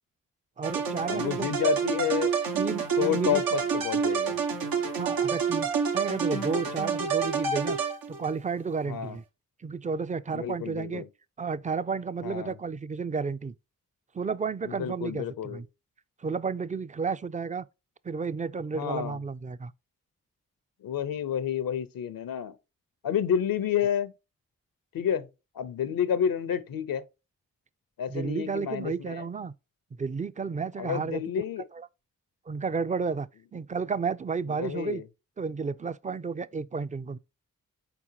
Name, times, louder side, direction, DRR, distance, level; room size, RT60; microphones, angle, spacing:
voice 1, 0.6-1.5 2.5-3.4 5.0-7.8 8.1-9.2 9.6-11.0 11.4-13.5 14.1-15.7 16.2-17.7 18.0-19.7 28.1-29.5 30.0-31.2 31.7-31.9 32.5-35.0 35.4-37.2, right 5 dB, 25° right, 0.4 m, -32 dB
sound 1, 0.6-8.4, right 6 dB, 85° right, 1.0 m, -28 dB
voice 2, 1.1-2.3 3.0-4.4 8.9-9.2 10.3-11.1 12.2-12.6 14.7-15.6 18.7-19.2 20.8-22.5 23.0-24.1 24.9-25.3 25.5-27.0 28.0-29.3 30.8-31.7 34.6-35.0, left 8 dB, 80° left, 0.6 m, -29 dB
4.4 x 3.8 x 2.8 m
cardioid pair, 40°, 34 cm